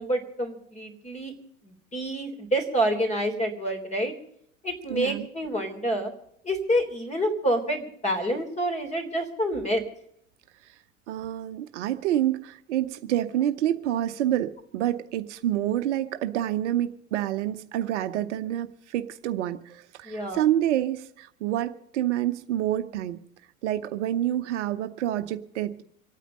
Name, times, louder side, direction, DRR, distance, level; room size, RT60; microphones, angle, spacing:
voice 1, 0.0-1.3 1.9-4.1 4.6-6.1 6.4-9.8 20.0-20.4, equal, 15° left, 5 dB, 3.6 m, -27 dB
voice 2, 4.9-5.3 10.6-10.8 11.1-23.2 23.6-25.8, right 12 dB, 60° right, 10 dB, 0.8 m, -28 dB
25.5 x 9.2 x 5.3 m, 0.70 s
figure-of-eight pair, 80°, 41 cm